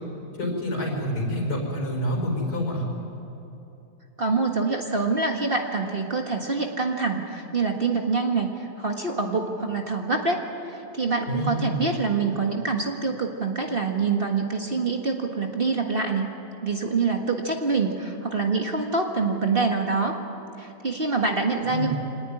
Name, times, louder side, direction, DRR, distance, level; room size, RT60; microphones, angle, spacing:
voice 1, 0.4-2.8 11.3-11.9 21.7-21.9, equal, 65° left, 1 dB, 5.6 m, -27 dB
voice 2, 4.2-10.4 10.7-16.3 16.6-20.2 20.6-21.9, right 4 dB, 35° right, 2 dB, 1.7 m, -25 dB
25.0 x 19.0 x 9.9 m, 2.9 s
omnidirectional pair, 1.7 m